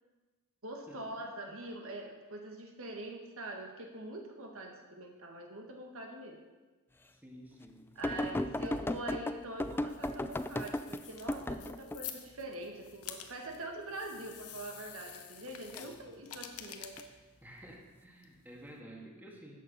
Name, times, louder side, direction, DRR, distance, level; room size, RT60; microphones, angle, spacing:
voice 1, 0.6-6.4 7.9-17.0, right 1 dB, 65° right, 2 dB, 1.6 m, -44 dB
voice 2, 7.0-8.6 15.7-16.1 17.4-19.6, right 1 dB, 10° right, -1 dB, 1.9 m, -52 dB
sound 1, 8.0-12.0 15.5-15.8 17.0-17.1, left 1 dB, 10° left, 0.3 m, -35 dB
sound 2, 9.6-18.8, left 9 dB, 80° left, 1.1 m, -50 dB
13.5 x 8.6 x 5.5 m, 1.2 s
head